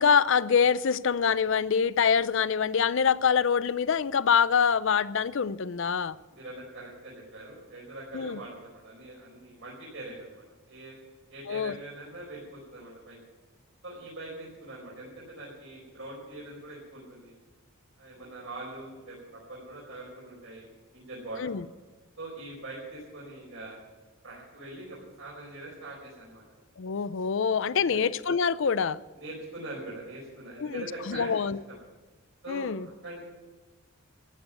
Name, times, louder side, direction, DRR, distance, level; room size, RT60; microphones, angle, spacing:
voice 1, 0.0-6.2 8.1-8.4 11.5-11.8 21.4-21.6 26.8-29.0 30.6-31.6 32.5-32.9, left 6 dB, 60° left, 0.5 m, -25 dB
voice 2, 6.0-11.0 11.3-13.2 13.8-17.3 18.0-20.7 20.9-21.4 22.2-23.8 24.2-26.4 27.8-28.0 29.2-31.8 32.4-32.7 33.0-33.2, right 2 dB, 65° right, 4.8 m, -43 dB
14.5 x 9.3 x 9.1 m
head